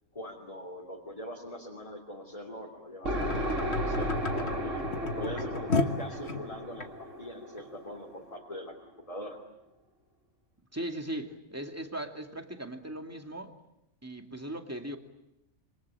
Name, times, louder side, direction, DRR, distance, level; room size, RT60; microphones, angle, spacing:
voice 1, 0.1-4.8 5.2-9.4, left 1 dB, 25° left, -3 dB, 3.1 m, -42 dB
sound 1, 3.0-6.9 7.6-7.7, left 2 dB, 55° left, 1.8 m, -32 dB
sound 2, 3.0-8.7, equal, 75° right, 3.0 m, -35 dB
voice 2, 10.7-13.6 14.0-15.0, right 1 dB, 10° right, 4 dB, 2.4 m, -38 dB
27.0 x 25.0 x 8.9 m, 0.86 s
omnidirectional pair, 1.3 m